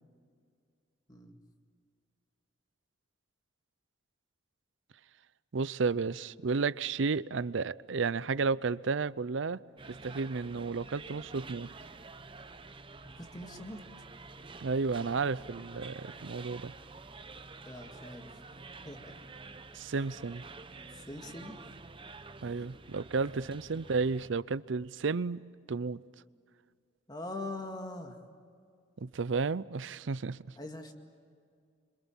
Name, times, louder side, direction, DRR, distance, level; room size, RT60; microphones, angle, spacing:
voice 1, 1.1-1.4 13.0-13.8 17.6-18.4 18.8-19.2 19.7-20.1 20.9-21.6 22.4-22.7 23.3-23.4 27.1-28.2 30.6-30.9, left 2 dB, 20° left, 2.1 m, -43 dB
voice 2, 5.5-9.6 9.9-11.7 14.6-16.7 19.7-20.4 22.4-25.4 25.7-26.0 29.0-30.4, right 4 dB, 70° right, 0.6 m, -32 dB
sound 1, 9.8-24.3, right 3 dB, 25° right, 0.9 m, -49 dB
26.0 x 26.0 x 7.3 m
head